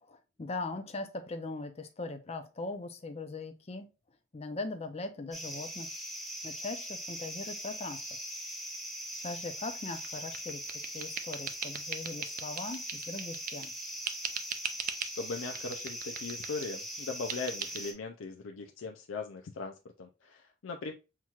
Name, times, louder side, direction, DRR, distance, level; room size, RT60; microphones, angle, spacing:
voice 1, 0.0-3.9 4.3-5.9 6.4-8.2 9.2-10.6 10.9-13.7, left 3 dB, 35° left, 0.5 m, -40 dB
sound 1, 5.3-17.9, equal, ahead, 0.9 m, -41 dB
sound 2, 10.0-13.8 14.1-15.2 15.5-16.7 17.3-17.8, right 8 dB, 45° right, 0.4 m, -40 dB
voice 2, 15.1-20.9, left 4 dB, 90° left, 0.5 m, -39 dB
5.8 x 3.0 x 2.4 m
head